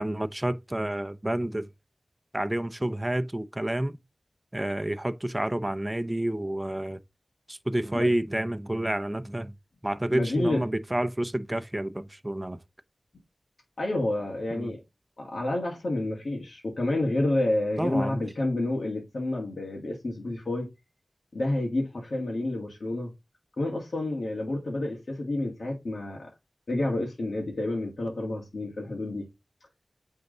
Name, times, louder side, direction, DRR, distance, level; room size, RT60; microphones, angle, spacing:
voice 1, 0.0-1.7 2.3-4.0 4.5-7.0 7.5-9.5 9.8-12.6 14.5-14.7 17.8-18.2, right 1 dB, 20° right, 0.7 m, -29 dB
voice 2, 10.1-10.6 13.8-14.8 15.2-20.7 21.3-23.1 23.6-26.3 26.7-29.3, left 2 dB, 70° left, 1.9 m, -29 dB
8.6 x 3.7 x 3.9 m
cardioid pair, 45°, 0 cm